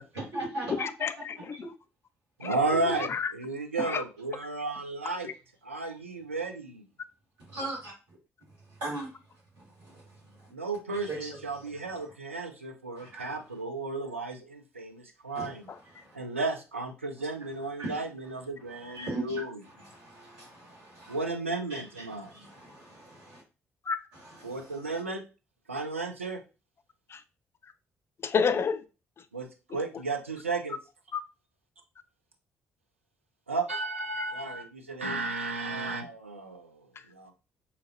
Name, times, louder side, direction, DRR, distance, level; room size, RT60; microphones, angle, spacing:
voice 1, 0.1-0.9 1.3-1.7 2.6-3.0 7.4-8.2 8.5-10.5 10.9-12.1 13.0-13.6 15.3-16.2 17.1-17.3 17.8-18.0 18.7-21.3 21.7-23.3 24.1-25.0, right 1 dB, 70° right, 2.0 m, -40 dB
voice 2, 0.8-1.5 2.4-2.6 3.0-3.3 3.8-4.0 5.2-5.3 23.9-24.0 28.2-28.8 31.1-31.2, left 6 dB, 40° left, 0.4 m, -29 dB
voice 3, 2.4-3.1 3.3-5.3 5.6-6.8 10.5-15.6 16.1-19.5 21.1-22.3 24.4-25.2 25.7-26.4 29.3-30.7 33.5-36.8 37.1-37.3, right 3 dB, 90° right, 0.3 m, -33 dB
3.8 x 2.8 x 2.6 m
figure-of-eight pair, 40°, 7 cm